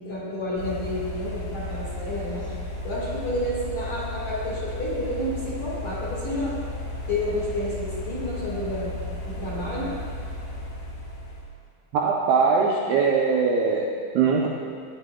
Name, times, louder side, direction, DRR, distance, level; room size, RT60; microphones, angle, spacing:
voice 1, 0.0-2.5 2.8-6.6 7.1-8.9 9.2-9.9, left 1 dB, 50° left, -8 dB, 2.3 m, -30 dB
sound 1, 0.6-11.4, left 2 dB, 70° left, 4.2 m, -34 dB
voice 2, 11.9-13.9 14.1-14.5, right 5 dB, 80° right, -3 dB, 2.3 m, -21 dB
16.0 x 9.6 x 2.2 m, 2.2 s
omnidirectional pair, 5.3 m